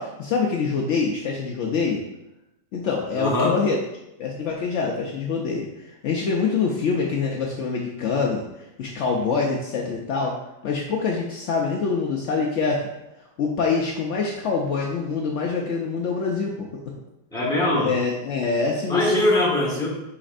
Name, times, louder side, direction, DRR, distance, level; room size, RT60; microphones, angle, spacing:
voice 1, 0.0-2.0 2.7-3.8 4.2-10.4 10.6-12.9 13.4-16.7 17.8-19.5, left 4 dB, 90° left, -1 dB, 0.6 m, -25 dB
voice 2, 3.1-3.6 17.3-17.9 18.9-19.9, left 1 dB, 5° left, -5 dB, 0.7 m, -22 dB
5.1 x 4.0 x 2.5 m, 0.91 s
omnidirectional pair, 1.8 m